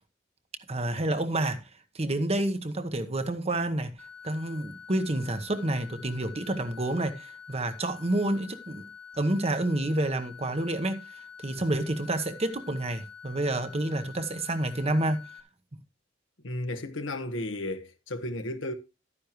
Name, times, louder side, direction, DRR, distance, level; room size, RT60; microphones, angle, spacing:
voice 1, 0.7-1.6 1.9-3.9 4.2-8.9 9.2-15.2, right 1 dB, 30° right, 1.1 m, -29 dB
sound 1, 4.0-15.4, left 6 dB, 10° left, 1.3 m, -47 dB
voice 2, 16.4-18.7, left 1 dB, 75° left, 1.4 m, -34 dB
12.5 x 9.8 x 3.1 m
head